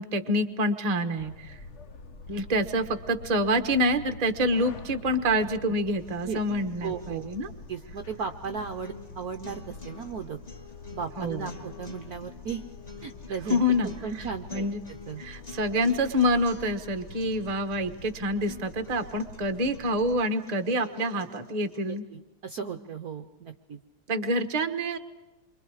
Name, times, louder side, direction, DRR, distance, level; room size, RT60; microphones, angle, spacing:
voice 1, 0.0-1.6 2.3-7.5 11.2-11.5 13.5-13.9 14.2-14.3 14.5-14.8 15.2-22.0 24.1-25.0, equal, 25° right, 8 dB, 0.9 m, -27 dB
sound 1, 1.2-20.2, left 3 dB, 45° left, 1.1 m, -46 dB
sound 2, 6.0-22.0, left 5 dB, 20° left, 2.1 m, -48 dB
voice 2, 6.8-7.3 7.7-10.4 10.9-12.7 13.0-15.2 21.9-23.8, right 6 dB, 55° right, 7 dB, 1.1 m, -36 dB
29.0 x 24.5 x 4.8 m, 1.1 s
omnidirectional pair, 2.4 m